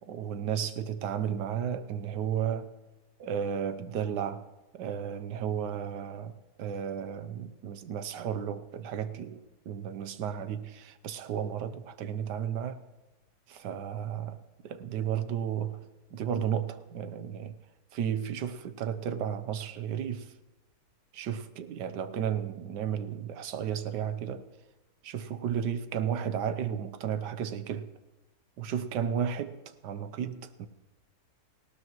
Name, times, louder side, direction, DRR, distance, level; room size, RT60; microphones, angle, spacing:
voice 1, 0.1-2.7 3.2-4.4 4.7-6.3 6.6-9.4 9.7-12.8 13.5-14.4 14.6-15.8 16.1-17.5 17.9-20.3 21.1-24.4 25.0-27.9 28.6-30.7, right 8 dB, 85° right, 1.4 m, -33 dB
18.5 x 17.5 x 3.1 m
omnidirectional pair, 1.8 m